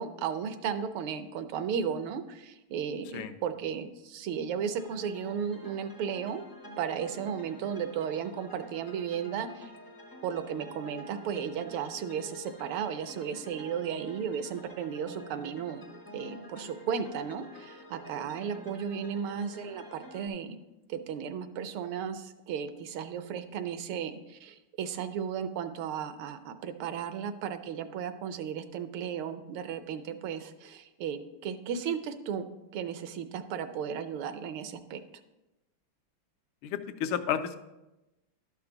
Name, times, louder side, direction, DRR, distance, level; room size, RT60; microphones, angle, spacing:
voice 1, 0.0-6.5 6.8-9.7 10.2-15.9 16.1-20.6 20.9-32.5 32.7-35.0, right 7 dB, 80° right, 10 dB, 1.5 m, -35 dB
sound 1, 4.8-20.3, equal, 30° left, 0.4 m, -48 dB
voice 2, 36.6-37.6, left 9 dB, 80° left, 9 dB, 1.4 m, -31 dB
12.0 x 5.9 x 3.8 m, 0.99 s
omnidirectional pair, 2.4 m